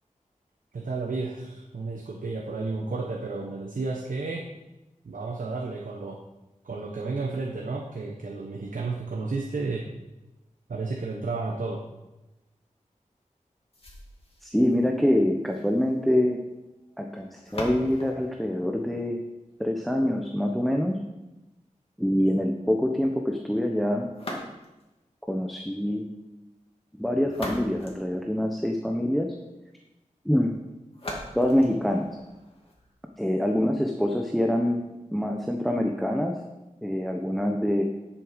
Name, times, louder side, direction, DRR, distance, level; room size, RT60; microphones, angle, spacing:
voice 1, 0.7-4.5 5.0-6.2 6.6-9.9 10.7-11.8, right 3 dB, 90° right, 0 dB, 1.1 m, -32 dB
sound 1, 13.7-19.7 24.1-25.0 27.0-28.9 30.9-32.9, left 1 dB, 45° left, 2.4 m, -42 dB
voice 2, 14.4-16.4 17.0-19.2 19.6-21.0 22.0-24.1 25.3-26.1 26.9-29.3 30.2-30.5 31.3-32.1 33.2-34.8 35.1-36.3 36.8-37.8, left 1 dB, ahead, 3 dB, 0.9 m, -25 dB
10.5 x 7.2 x 5.1 m, 1.0 s
wide cardioid pair, 80°, 13 cm